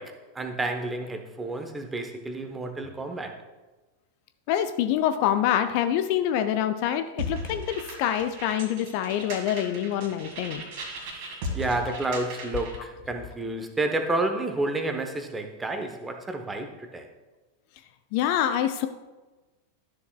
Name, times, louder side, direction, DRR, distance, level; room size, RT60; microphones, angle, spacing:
voice 1, 0.0-3.4 11.1-17.1, right 2 dB, 10° right, 5 dB, 0.9 m, -30 dB
voice 2, 4.5-10.6 18.1-18.9, left 10 dB, 45° left, 9 dB, 0.4 m, -26 dB
sound 1, 7.2-12.8, equal, 50° right, 1.8 m, -37 dB
12.5 x 7.0 x 2.3 m, 1.2 s
figure-of-eight pair, 90°, 0 cm